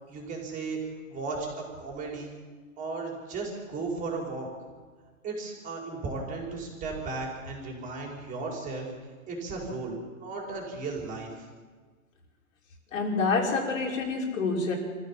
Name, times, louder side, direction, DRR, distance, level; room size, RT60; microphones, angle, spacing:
voice 1, 0.1-0.8 1.1-2.3 2.8-4.5 5.2-8.9 9.3-11.3, right 3 dB, 20° right, -1 dB, 5.0 m, -35 dB
voice 2, 12.9-14.8, left 4 dB, 65° left, 0 dB, 5.6 m, -27 dB
26.5 x 14.5 x 7.5 m, 1.5 s
hypercardioid pair, 150°, 42 cm